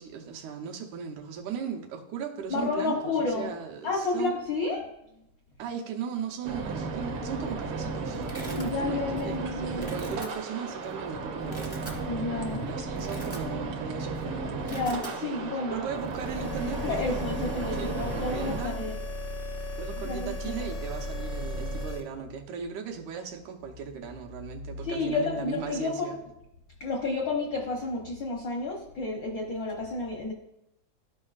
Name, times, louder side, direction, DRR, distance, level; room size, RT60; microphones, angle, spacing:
voice 1, 0.0-4.3 5.6-12.1 12.6-14.8 15.1-18.9 19.8-26.2, right 7 dB, 85° right, 2 dB, 2.3 m, -38 dB
voice 2, 2.5-3.5 3.8-4.9 8.6-9.9 12.1-12.7 14.6-15.8 16.8-19.0 20.0-20.7 24.8-26.2 26.8-30.3, left 3 dB, 75° left, -1 dB, 1.0 m, -31 dB
sound 1, 6.4-18.6, right 3 dB, 65° right, 1.4 m, -34 dB
Domestic sounds home sounds, 7.4-7.6 7.8-8.7 9.2-9.4 9.7-10.3 10.9-11.0 11.4-12.0 12.4-12.5 12.9-13.8 14.1-14.2 14.5-15.2, right 1 dB, 15° right, 0.4 m, -44 dB
sound 2, 16.0-22.0, left 1 dB, 55° left, 0.7 m, -35 dB
13.0 x 5.4 x 2.4 m, 0.84 s
omnidirectional pair, 3.3 m